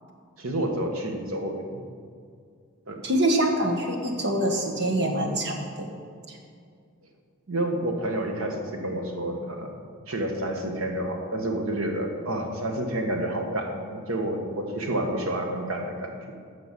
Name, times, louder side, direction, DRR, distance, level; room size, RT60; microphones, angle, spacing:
voice 1, 0.4-1.8 2.9-3.0 7.5-16.2, right 1 dB, 90° right, 3 dB, 1.5 m, -29 dB
voice 2, 3.0-5.9 6.3-6.4, right 1 dB, 55° right, 2 dB, 1.4 m, -25 dB
9.9 x 6.0 x 7.4 m, 2.2 s
head